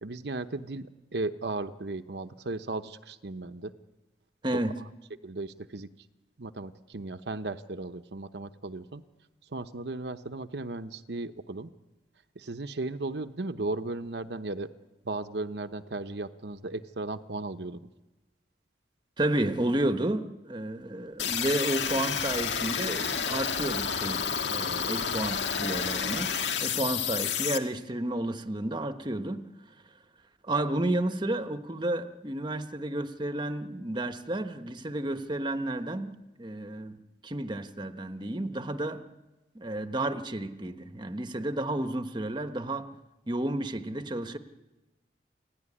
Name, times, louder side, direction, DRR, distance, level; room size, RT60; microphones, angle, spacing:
voice 1, 0.0-3.7 5.2-5.9 6.4-9.0 9.5-11.7 12.3-14.7 15.0-17.8, right 2 dB, 65° right, 0.9 m, -36 dB
voice 2, 4.4-4.8 19.2-29.5 30.4-37.0 37.2-39.1 39.5-42.9 43.3-44.4, right 1 dB, 25° right, 1.1 m, -31 dB
sound 1, 21.2-27.6, left 7 dB, 85° left, 1.7 m, -30 dB
28.5 x 17.0 x 9.9 m
head